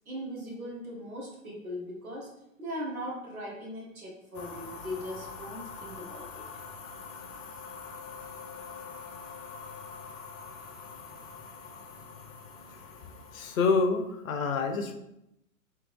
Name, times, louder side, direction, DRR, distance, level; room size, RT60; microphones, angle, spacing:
voice 1, 0.1-2.3 2.6-6.4, equal, 90° right, -1 dB, 1.3 m, -39 dB
sound 1, 4.3-13.7, left 5 dB, 30° left, 0.5 m, -44 dB
voice 2, 13.3-14.9, left 4 dB, 70° left, 6 dB, 0.7 m, -27 dB
3.4 x 3.4 x 3.1 m, 0.82 s
hypercardioid pair, 110°, 41 cm